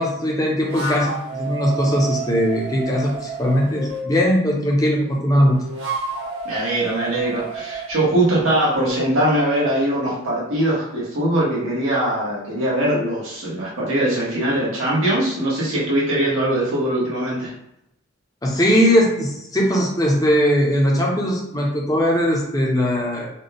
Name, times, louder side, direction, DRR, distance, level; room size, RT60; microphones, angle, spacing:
voice 1, 0.0-5.6 18.4-23.3, equal, 15° left, -2 dB, 0.7 m, -19 dB
sound 1, 0.6-4.1 5.3-9.1, right 3 dB, 65° right, 1.2 m, -31 dB
voice 2, 6.4-17.5, right 1 dB, 80° right, -6 dB, 1.5 m, -21 dB
4.1 x 2.3 x 3.4 m, 0.80 s
head